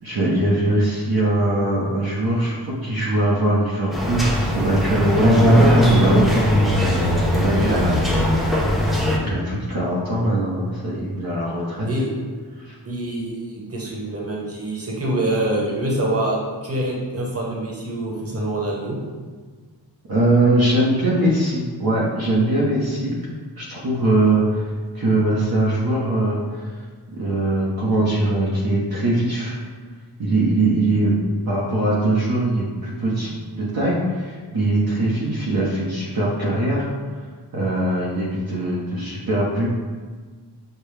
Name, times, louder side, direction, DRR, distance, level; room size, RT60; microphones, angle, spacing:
voice 1, 0.0-5.5 5.9-6.5 7.3-8.0 9.2-11.9 12.6-12.8 20.1-23.2 23.6-26.7 27.1-29.6 30.2-31.2 31.5-36.9 37.5-39.7, right 1 dB, 55° right, -6 dB, 0.9 m, -21 dB
sound 1, 3.9-9.2, equal, ahead, 0.7 m, -18 dB
voice 2, 7.5-8.2 11.8-12.1 12.8-18.9, right 1 dB, 35° right, -3 dB, 1.1 m, -25 dB
6.6 x 2.2 x 3.3 m, 1.5 s
wide cardioid pair, 75°, 42 cm